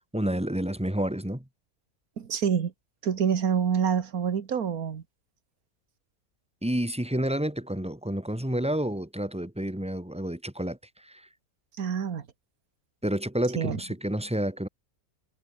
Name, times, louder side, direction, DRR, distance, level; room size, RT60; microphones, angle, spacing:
voice 1, 0.0-1.5 6.6-11.3 13.0-14.7, right 1 dB, 5° right, 2.6 m, -30 dB
voice 2, 2.2-2.7 3.0-5.0 11.8-12.3 13.6-13.8, right 7 dB, 80° right, 1.9 m, -27 dB
omnidirectional pair, 1.5 m